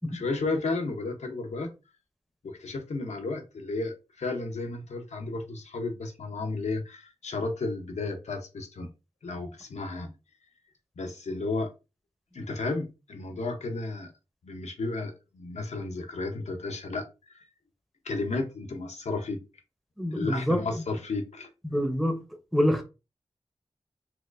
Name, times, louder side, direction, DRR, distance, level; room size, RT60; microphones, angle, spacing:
voice 1, 0.1-1.7 2.4-8.9 9.2-10.1 11.0-11.7 12.3-14.1 14.4-17.1 17.3-17.5 18.0-19.4 20.1-21.5, left 3 dB, 85° left, 0.7 m, -33 dB
voice 2, 20.0-20.8 21.6-22.2 22.5-22.8, equal, ahead, 0.6 m, -26 dB
4.1 x 2.4 x 2.4 m
wide cardioid pair, 70°, 11 cm